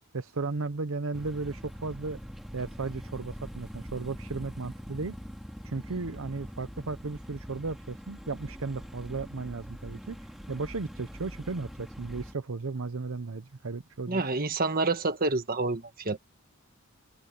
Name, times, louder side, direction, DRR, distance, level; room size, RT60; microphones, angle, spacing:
voice 1, 0.1-2.2 2.5-5.2 5.6-10.2 10.5-14.2, right 3 dB, 70° right, 0.7 m, -35 dB
sound 1, 1.1-12.3, equal, ahead, 3.9 m, -43 dB
voice 2, 14.1-16.2, right 3 dB, 40° right, 1.6 m, -28 dB
head